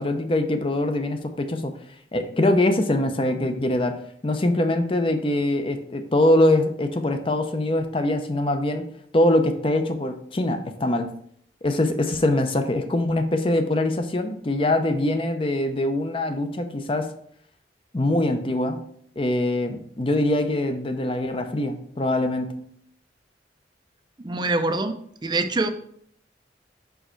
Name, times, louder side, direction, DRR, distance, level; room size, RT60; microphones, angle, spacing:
voice 1, 0.0-1.8 2.1-3.9 4.2-8.8 9.1-11.1 11.6-17.1 17.9-18.8 19.2-22.5, left 1 dB, 30° left, 7 dB, 0.6 m, -23 dB
voice 2, 24.2-24.9 25.2-25.7, right 2 dB, 25° right, 8 dB, 0.5 m, -24 dB
5.5 x 4.6 x 4.5 m, 0.65 s
head